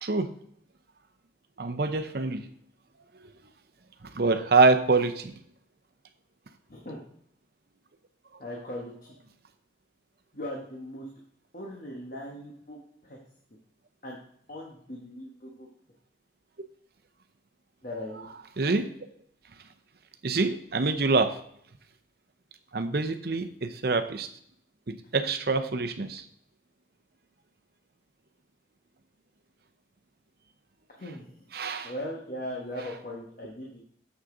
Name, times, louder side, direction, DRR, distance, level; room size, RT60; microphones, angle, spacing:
voice 1, 1.6-2.5 4.0-5.4 18.6-18.9 20.2-21.4 22.7-24.3 24.9-26.2 31.5-31.9, right 3 dB, 55° right, 9 dB, 0.7 m, -25 dB
voice 2, 6.7-7.0 8.4-9.2 10.3-11.1 11.5-12.8 13.0-13.2 14.0-14.2 14.5-15.7 17.8-18.3 31.0-31.3 31.8-33.8, left 1 dB, 45° left, -2 dB, 1.2 m, -39 dB
7.3 x 6.3 x 3.8 m, 0.67 s
head